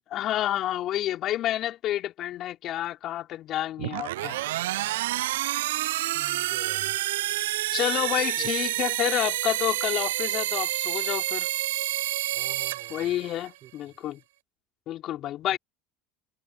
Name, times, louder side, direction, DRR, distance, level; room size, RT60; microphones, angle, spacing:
voice 1, 0.1-4.4 7.7-11.5 12.9-14.2 14.9-15.6, left 13 dB, 55° left, 5.4 m, -29 dB
sound 1, 3.8-13.5, right 16 dB, 80° right, 0.3 m, -29 dB
voice 2, 6.0-7.0 8.4-8.5 12.3-13.1 13.6-13.7 15.5-15.6, right 12 dB, 50° right, 6.4 m, -47 dB
hypercardioid pair, 80°, 0 cm